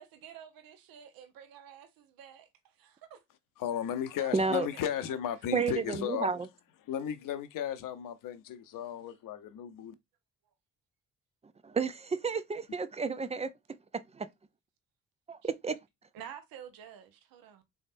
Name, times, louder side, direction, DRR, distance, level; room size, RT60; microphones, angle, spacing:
voice 1, 0.0-2.5 2.8-3.2 4.2-5.2 15.4-15.5 16.1-17.6, right 9 dB, 60° right, 0.9 m, -50 dB
voice 2, 3.6-6.3 6.9-9.9, left 9 dB, 55° left, 0.8 m, -35 dB
voice 3, 4.3-4.7 5.5-6.5 11.6-13.5 14.1-14.3 15.3-15.8, right 5 dB, 15° right, 0.4 m, -31 dB
3.9 x 3.4 x 2.5 m
hypercardioid pair, 45°, 40 cm